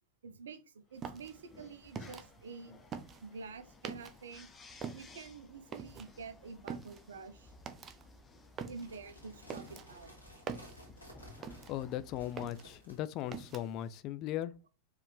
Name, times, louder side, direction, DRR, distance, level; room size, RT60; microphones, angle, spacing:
voice 1, 0.2-2.8 3.2-4.5 4.9-7.5 8.7-10.1, right 4 dB, 65° right, 0.7 m, -48 dB
sound 1, 0.9-12.8, left 3 dB, 20° left, 0.7 m, -58 dB
sound 2, 1.0-4.4 4.7-12.0 12.2-13.9, right 6 dB, 25° right, 0.6 m, -45 dB
sound 3, 8.7-13.0, equal, 85° left, 1.6 m, -56 dB
voice 2, 11.4-14.5, left 12 dB, 40° left, 0.3 m, -38 dB
4.6 x 3.3 x 3.3 m
figure-of-eight pair, 90°, 0 cm